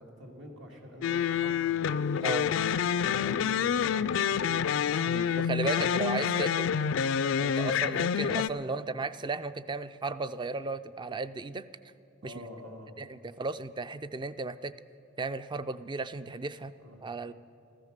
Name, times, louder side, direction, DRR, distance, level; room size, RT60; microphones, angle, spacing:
voice 1, 0.0-1.9 2.6-4.6 8.6-8.8 12.2-12.9 16.8-17.0, left 1 dB, 75° right, 1 dB, 2.3 m, -47 dB
sound 1, 1.0-8.5, left 7 dB, 75° left, 0.3 m, -28 dB
voice 2, 5.0-6.7 7.4-11.6 12.2-12.3 13.0-14.7 15.2-16.7 17.0-17.3, right 3 dB, 25° right, 13 dB, 0.4 m, -35 dB
14.0 x 13.0 x 6.6 m, 2.7 s
head